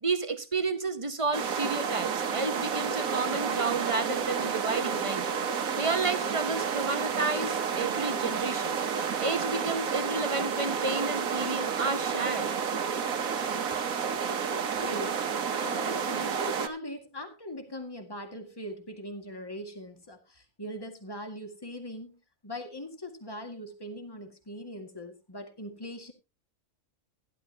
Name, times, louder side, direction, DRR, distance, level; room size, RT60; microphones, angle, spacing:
voice 1, 0.0-5.3 5.7-8.8 9.2-12.5, right 3 dB, 25° right, 0.8 m, -31 dB
sound 1, 1.3-16.7, right 6 dB, 90° right, 1.5 m, -30 dB
voice 2, 14.8-15.2 15.6-26.1, equal, 15° left, 2.0 m, -41 dB
16.0 x 11.0 x 2.9 m
omnidirectional pair, 1.4 m